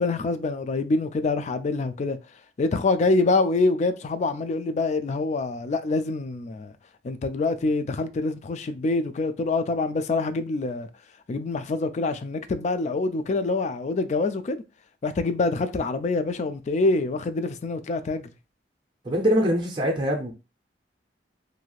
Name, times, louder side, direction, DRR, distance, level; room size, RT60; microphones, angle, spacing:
voice 1, 0.0-2.2 2.6-6.7 7.0-10.9 11.3-14.6 15.0-18.3, left 3 dB, 40° left, 0.3 m, -25 dB
voice 2, 19.0-20.3, equal, 25° right, 0.6 m, -23 dB
3.0 x 2.7 x 2.4 m
head